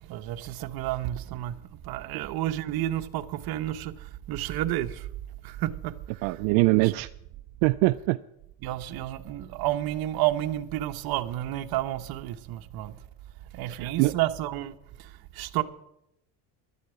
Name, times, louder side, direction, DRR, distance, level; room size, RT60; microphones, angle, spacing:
voice 1, 0.0-5.1 5.4-6.3 6.8-6.9 8.6-12.9 13.5-15.6, right 14 dB, 60° right, 1.1 m, -31 dB
voice 2, 6.2-7.1 7.6-8.2 13.7-14.1, right 22 dB, 85° right, 0.5 m, -23 dB
12.0 x 8.4 x 8.3 m
cardioid pair, 125°, 40 cm